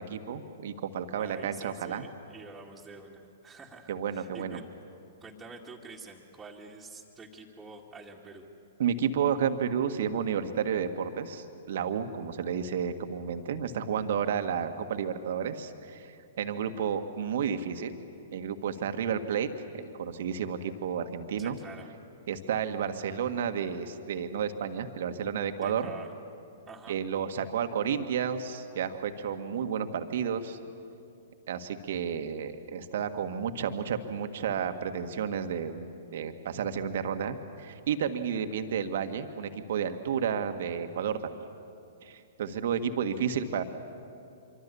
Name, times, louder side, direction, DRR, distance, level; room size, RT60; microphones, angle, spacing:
voice 1, 0.0-2.1 3.9-4.6 8.8-18.0 18.3-19.5 19.7-21.6 22.3-25.9 26.9-30.6 31.5-41.5 42.0-43.6, right 7 dB, 60° right, 7 dB, 1.7 m, -31 dB
voice 2, 1.1-4.6 5.2-8.5 21.4-21.9 25.6-26.1 26.7-27.0, right 3 dB, 10° right, -4 dB, 2.3 m, -47 dB
25.5 x 24.5 x 7.0 m, 2.6 s
figure-of-eight pair, 115°, 0 cm